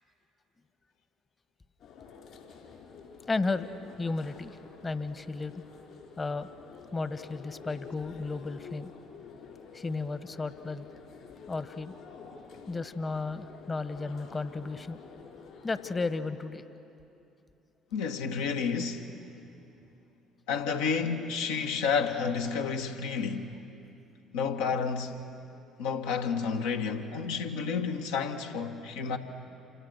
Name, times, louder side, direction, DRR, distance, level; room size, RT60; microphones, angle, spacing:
sound 1, 1.8-16.2, left 5 dB, 60° left, 5.4 m, -50 dB
voice 1, 3.3-3.7 4.0-5.6 6.2-6.5 6.9-8.9 9.7-10.9 11.5-12.0 12.7-15.0 15.6-16.6, left 3 dB, 30° left, 1.3 m, -33 dB
voice 2, 17.9-19.1 20.5-23.5 24.3-25.2 25.8-29.2, left 5 dB, 75° left, 1.5 m, -30 dB
28.5 x 26.5 x 6.6 m
hypercardioid pair, 55°, 0 cm